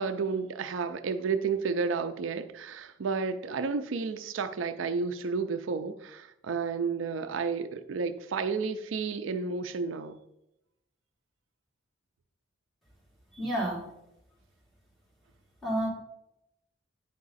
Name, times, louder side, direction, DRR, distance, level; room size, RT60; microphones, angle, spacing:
voice 1, 0.0-10.2, right 5 dB, 80° right, 10 dB, 0.5 m, -31 dB
voice 2, 13.3-13.8 15.6-15.9, right 1 dB, ahead, -8 dB, 3.1 m, -29 dB
9.3 x 4.8 x 4.1 m, 0.86 s
head